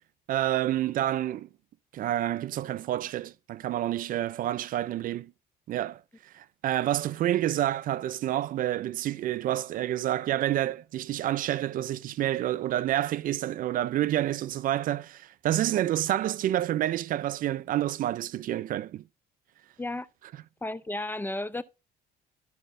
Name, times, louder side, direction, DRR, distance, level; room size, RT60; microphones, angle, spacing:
voice 1, 0.3-1.5 1.9-5.3 5.7-6.0 6.3-19.0, right 13 dB, 55° right, 0.4 m, -28 dB
voice 2, 20.6-21.6, left 2 dB, 10° left, 0.4 m, -33 dB
13.0 x 5.0 x 2.5 m
cardioid pair, 110°, 17 cm